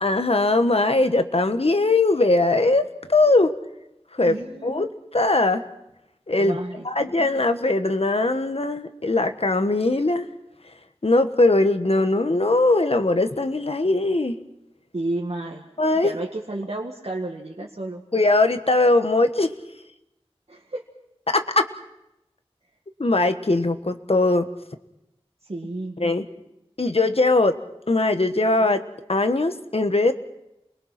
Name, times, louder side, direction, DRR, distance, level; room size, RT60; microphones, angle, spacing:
voice 1, 0.0-3.5 4.2-4.3 4.6-5.6 6.3-6.6 6.8-10.3 11.0-14.3 15.8-16.1 18.1-19.5 21.3-21.7 23.0-24.5 26.0-26.3 26.8-27.6 27.9-28.8 29.1-30.1, left 2 dB, 70° left, 8 dB, 1.4 m, -20 dB
voice 2, 4.2-4.8 6.4-7.1 14.9-15.7 16.0-18.0 20.5-20.8 25.4-26.0, right 2 dB, 80° right, -1 dB, 2.0 m, -32 dB
29.5 x 22.0 x 5.9 m, 0.90 s
wide cardioid pair, 45°, 11 cm